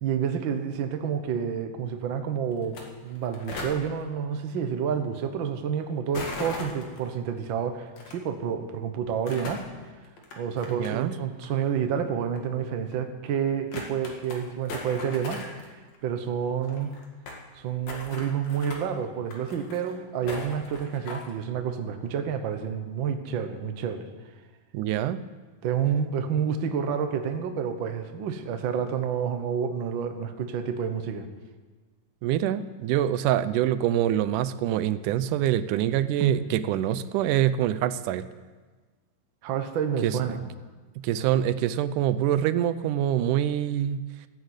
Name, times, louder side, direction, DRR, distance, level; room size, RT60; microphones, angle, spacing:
voice 1, 0.0-9.6 10.4-15.6 16.0-17.0 17.6-24.1 25.6-31.3 36.2-36.4 39.4-40.4, right 7 dB, 60° right, 7 dB, 1.3 m, -29 dB
sound 1, 2.6-2.8 3.1-3.8 6.1-7.0 8.0-8.1 9.1-9.7 10.2-11.1 11.4-11.5 12.4-12.5 12.9-13.0 13.3-13.4 13.7-14.4 14.7-15.7 15.9-16.0 16.2-16.3 16.5-17.4 17.9-18.8 19.3-19.9 20.3-21.3, left 3 dB, 60° left, 3.1 m, -38 dB
voice 2, 10.7-11.1 24.7-25.2 32.2-38.2 40.0-40.4 41.0-44.0, right 11 dB, 85° right, 13 dB, 2.2 m, -25 dB
14.5 x 10.5 x 8.1 m, 1.4 s
omnidirectional pair, 3.6 m